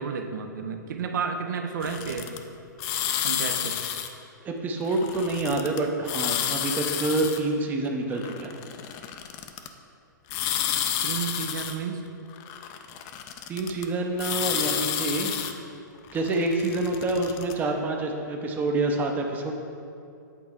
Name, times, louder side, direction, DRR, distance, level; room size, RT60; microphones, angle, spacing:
voice 1, 0.0-2.3 3.2-3.8 11.0-12.1, right 6 dB, 65° right, 6 dB, 0.5 m, -31 dB
sound 1, 1.8-2.4 2.8-4.1 4.9-5.8 6.0-7.4 8.1-9.7 10.3-11.8 12.3-13.8 14.2-15.5 16.1-17.5, left 10 dB, 35° left, 0.4 m, -30 dB
voice 2, 4.4-8.5 13.5-15.3 16.1-19.5, right 2 dB, 15° right, 2 dB, 0.5 m, -27 dB
8.3 x 4.2 x 3.5 m, 2.5 s
hypercardioid pair, 130°, 11 cm